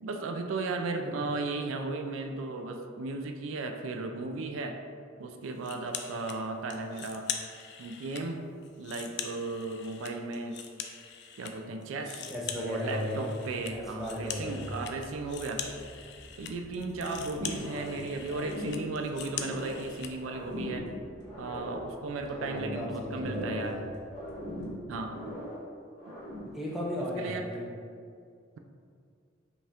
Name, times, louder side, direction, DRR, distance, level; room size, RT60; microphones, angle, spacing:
voice 1, 0.0-4.8 5.2-7.3 7.8-8.4 8.8-10.6 11.4-12.2 12.6-15.7 16.4-20.9 21.4-23.8 24.9-25.2 26.1-26.2 27.0-27.5, right 3 dB, 90° right, 4 dB, 0.4 m, -35 dB
sound 1, 5.6-6.4 6.7-8.2 8.6-11.5 11.8-20.1, left 8 dB, 60° left, 0.4 m, -42 dB
voice 2, 12.3-13.3 13.7-14.8 22.3-23.9 24.5-24.7 26.5-27.7, left 1 dB, ahead, -5 dB, 0.6 m, -36 dB
sound 2, 13.4-25.0, equal, 65° right, 0.9 m, -54 dB
sound 3, 17.2-18.0 18.2-19.9 20.2-21.9 22.2-23.8 24.1-25.7 26.0-26.6, left 1 dB, 15° left, 1.5 m, -39 dB
5.1 x 2.4 x 3.4 m, 2.3 s
head